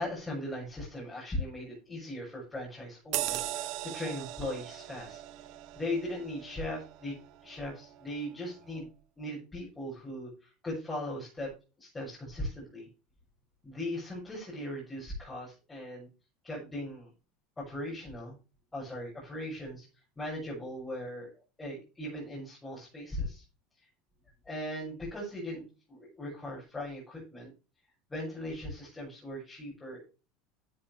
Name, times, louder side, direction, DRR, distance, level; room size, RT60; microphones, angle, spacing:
voice 1, 0.0-5.2 5.7-7.2 7.4-8.9 9.2-11.5 11.8-12.9 13.6-16.1 16.4-17.1 17.6-18.3 18.7-19.9 20.2-21.3 21.6-23.4 24.4-27.5 28.1-30.1, left 1 dB, 15° left, -5 dB, 6.8 m, -38 dB
sound 1, 3.1-8.1 8.5-8.7, right 15 dB, 60° right, 1.3 m, -39 dB
12.0 x 8.6 x 3.4 m, 0.32 s
supercardioid pair, 130°, 0 cm